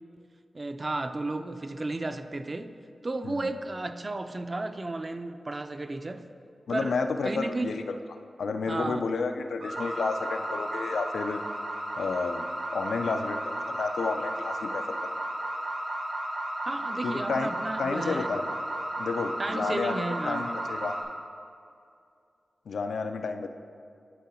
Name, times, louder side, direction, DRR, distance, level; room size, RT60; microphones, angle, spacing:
voice 1, 0.5-2.7 3.0-6.3 6.7-7.0 7.2-7.7 8.7-9.1 16.6-18.4 19.4-20.5, right 2 dB, 25° right, 9 dB, 0.3 m, -33 dB
voice 2, 6.7-8.0 8.4-11.4 11.9-15.0 17.0-17.5 17.8-18.6 19.0-21.0 22.7-23.5, left 4 dB, 90° left, 7 dB, 0.4 m, -31 dB
sound 1, 9.6-21.0, right 1 dB, 70° right, 1.3 m, -34 dB
11.0 x 3.8 x 4.3 m, 2.4 s
wide cardioid pair, 145°, 0 cm